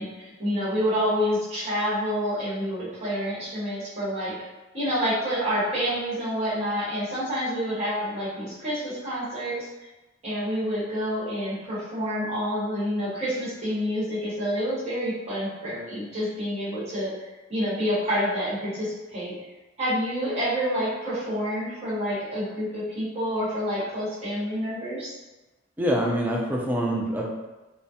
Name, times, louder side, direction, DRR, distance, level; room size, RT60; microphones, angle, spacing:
voice 1, 0.0-4.3 4.7-9.7 10.2-17.1 17.5-19.3 19.8-25.1, equal, 35° right, -11 dB, 0.9 m, -28 dB
voice 2, 25.8-27.3, equal, 10° right, -2 dB, 0.3 m, -25 dB
2.2 x 2.0 x 2.7 m, 1.1 s
head